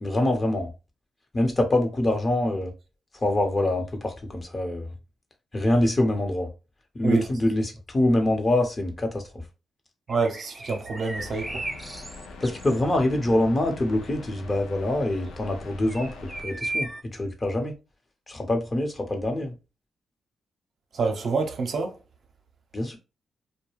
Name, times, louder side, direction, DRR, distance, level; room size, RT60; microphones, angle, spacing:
voice 1, 0.0-0.7 1.3-2.7 3.2-4.9 5.5-6.5 6.9-9.2 12.4-17.7 18.3-19.5 22.7-23.0, left 1 dB, 35° left, 0.9 m, -25 dB
sound 1, 10.1-17.0, right 1 dB, 15° right, 0.5 m, -36 dB
voice 2, 10.1-11.6 20.9-22.0, right 4 dB, 65° right, 0.7 m, -27 dB
sound 2, 11.1-16.4, left 3 dB, 85° left, 0.5 m, -43 dB
2.3 x 2.1 x 3.1 m
supercardioid pair, 50°, 0 cm